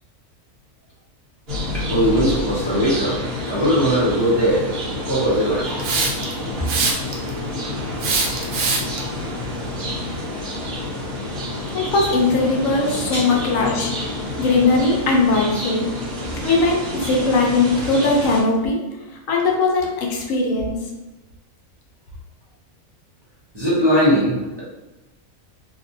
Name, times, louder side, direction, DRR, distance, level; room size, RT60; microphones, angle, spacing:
sound 1, 1.5-18.4, left 1 dB, 50° right, 1.1 m, -28 dB
voice 1, 1.7-4.7 5.1-5.6 6.8-6.9 13.1-13.3 13.6-13.7 23.5-24.6, equal, 30° right, -8 dB, 0.5 m, -20 dB
Hiss, 5.8-6.3 6.7-7.3 8.0-9.0, right 4 dB, 80° right, 1.0 m, -22 dB
voice 2, 11.7-14.1 14.4-15.9 16.4-18.8 19.3-20.8, left 3 dB, 75° left, 0 dB, 1.0 m, -19 dB
2.8 x 2.5 x 2.5 m, 1.1 s
omnidirectional pair, 1.4 m